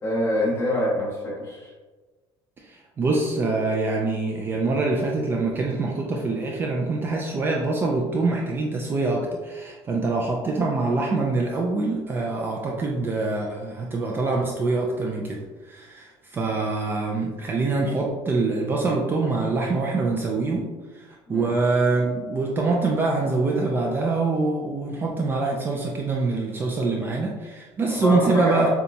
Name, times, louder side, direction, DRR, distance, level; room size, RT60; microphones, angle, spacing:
voice 1, 0.0-1.7 21.3-21.5 27.9-28.7, left 1 dB, 25° left, -5 dB, 1.2 m, -25 dB
voice 2, 2.6-28.7, right 3 dB, 20° right, -1 dB, 0.4 m, -25 dB
6.7 x 2.3 x 2.7 m, 1.3 s
cardioid pair, 170°, 10 cm